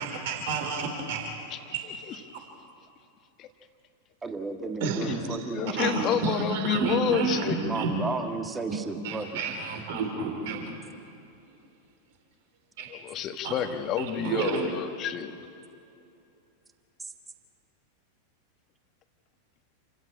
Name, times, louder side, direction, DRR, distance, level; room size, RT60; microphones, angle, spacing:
voice 1, 0.0-1.8 4.8-5.4 5.8-7.9 8.7-8.8 9.0-10.8 12.8-12.9 13.4-13.6 14.0-14.7, right 4 dB, 50° right, 3 dB, 3.8 m, -30 dB
voice 2, 4.2-6.3 7.3-9.3, right 3 dB, 15° right, 6 dB, 1.7 m, -33 dB
voice 3, 5.5-7.6 12.9-15.3, left 9 dB, 35° left, 8 dB, 1.5 m, -29 dB
28.5 x 15.5 x 8.6 m, 2.8 s
figure-of-eight pair, 90°, 0 cm